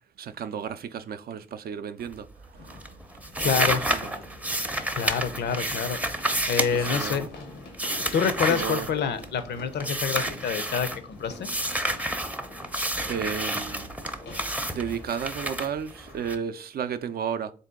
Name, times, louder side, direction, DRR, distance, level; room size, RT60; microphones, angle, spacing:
voice 1, 0.2-2.3 2.6-2.8 3.4-4.0 6.7-7.3 8.5-8.9 13.1-13.9 14.6-17.5, right 7 dB, 55° right, 0.4 m, -33 dB
sound 1, 0.6-0.7 2.6-16.4, left 3 dB, 90° left, 0.9 m, -46 dB
sound 2, 2.0-2.4 2.7-9.4 9.8-11.0 11.4-16.3, right 1 dB, 5° right, 0.6 m, -30 dB
voice 2, 3.4-3.8 4.9-6.0 6.5-7.3 8.1-11.5, left 7 dB, 65° left, 0.6 m, -27 dB
3.7 x 2.7 x 3.6 m
supercardioid pair, 55°, 19 cm